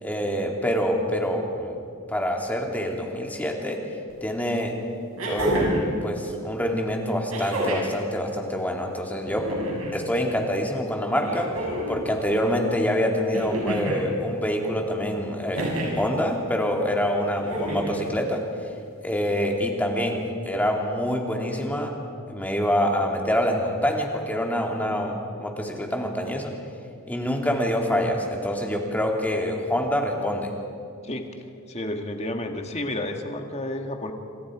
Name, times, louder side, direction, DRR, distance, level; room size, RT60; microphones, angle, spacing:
voice 1, 0.0-1.8 2.1-3.8 4.2-4.7 5.2-9.6 9.9-11.5 11.9-18.4 19.0-21.9 22.3-26.5 27.1-30.5, equal, 5° left, 1 dB, 2.5 m, -26 dB
sound 1, 4.1-4.2 5.2-5.9 7.3-8.0 9.2-10.0 11.2-12.0 13.3-14.0 15.5-16.1 17.4-18.0 19.3-19.4, right 1 dB, 75° right, 6.9 m, -28 dB
voice 2, 31.7-34.1, left 1 dB, 30° left, 4 dB, 1.9 m, -31 dB
27.5 x 26.0 x 5.0 m, 2.4 s
head